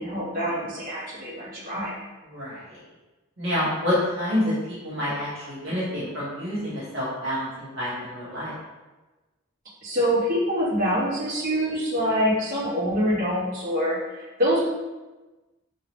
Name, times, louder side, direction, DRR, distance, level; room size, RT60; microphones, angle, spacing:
voice 1, 0.0-1.9 9.8-14.6, equal, 45° right, -11 dB, 1.4 m, -25 dB
voice 2, 2.3-2.8 3.4-8.5, left 1 dB, 75° right, -9 dB, 1.1 m, -28 dB
2.9 x 2.8 x 2.9 m, 1.2 s
head